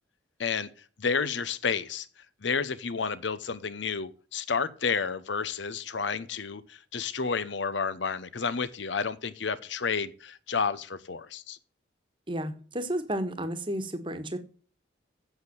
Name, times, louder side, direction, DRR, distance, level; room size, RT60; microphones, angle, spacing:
voice 1, 1.0-2.1 2.4-11.6, left 5 dB, 70° left, 0.8 m, -31 dB
voice 2, 12.3-14.4, right 1 dB, 25° right, 1.3 m, -32 dB
8.1 x 8.1 x 6.9 m
head